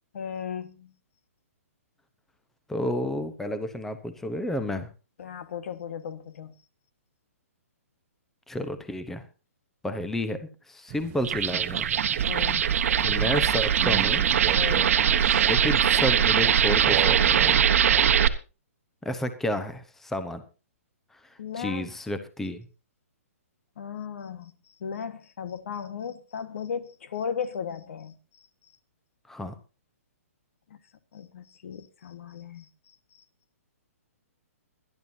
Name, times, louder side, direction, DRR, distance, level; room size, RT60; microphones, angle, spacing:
voice 1, 0.1-0.9 5.2-6.5 12.3-12.7 14.5-14.9 21.4-22.0 23.8-24.5 24.8-28.2 30.7-30.8 31.1-33.0, left 7 dB, 65° left, 1.5 m, -36 dB
voice 2, 2.7-4.9 8.5-9.2 9.8-11.9 13.0-14.2 15.5-17.7 19.0-20.4 21.6-22.7 29.3-29.5, left 1 dB, 5° left, 0.9 m, -31 dB
Crow, 10.9-17.6, right 14 dB, 25° right, 0.9 m, -36 dB
sound 1, 11.2-18.3, right 8 dB, 65° right, 1.2 m, -22 dB
23.0 x 11.0 x 2.8 m
hypercardioid pair, 150°, 8 cm